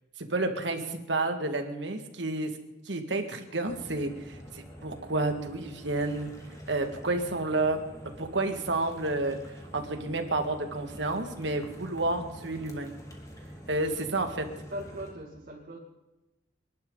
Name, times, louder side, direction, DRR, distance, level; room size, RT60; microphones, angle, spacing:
voice 1, 0.2-2.5 2.9-6.3 6.7-7.8 8.2-9.4 9.7-12.9 13.7-14.5, right 2 dB, 75° right, 5 dB, 2.0 m, -30 dB
sound 1, 3.6-15.1, equal, 20° left, 2.5 m, -47 dB
voice 2, 14.4-15.8, equal, 55° right, -2 dB, 2.3 m, -40 dB
27.5 x 11.5 x 4.0 m, 1.0 s
head